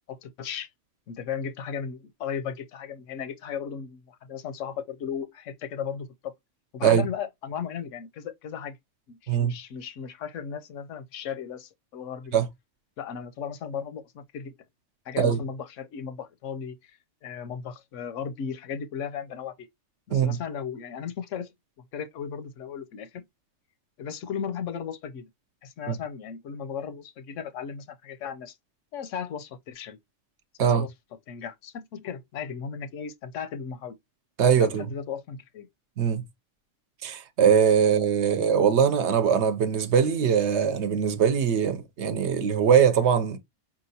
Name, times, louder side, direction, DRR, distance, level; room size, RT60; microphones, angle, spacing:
voice 1, 0.1-0.7 1.1-6.3 6.7-8.8 9.1-12.4 13.0-14.5 15.1-19.7 20.1-21.5 21.9-23.2 24.0-25.3 25.6-28.6 28.9-30.0 30.6-30.9 31.3-34.0 34.5-35.7, left 7 dB, 90° left, 1.0 m, -36 dB
voice 2, 34.4-34.9 36.0-36.2 37.0-43.4, right 7 dB, 70° right, 0.9 m, -22 dB
4.7 x 2.9 x 2.7 m
omnidirectional pair, 1.3 m